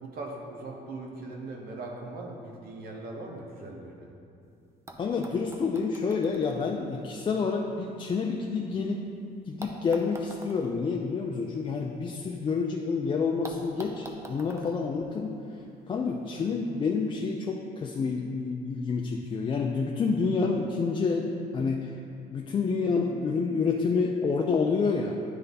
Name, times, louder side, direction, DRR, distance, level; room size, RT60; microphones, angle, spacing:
voice 1, 0.0-4.1 16.3-16.5, right 2 dB, 60° right, 0 dB, 1.1 m, -40 dB
sound 1, 4.4-4.5 4.9-8.9 9.6-12.6 12.8-12.9 13.4-15.8 16.8-16.9, right 2 dB, 15° right, 0.6 m, -48 dB
voice 2, 5.0-9.0 9.5-15.4 15.9-21.9 22.3-25.2, left 4 dB, 30° left, 0 dB, 0.4 m, -28 dB
9.5 x 3.3 x 4.0 m, 2.6 s
cardioid pair, 110°, 17 cm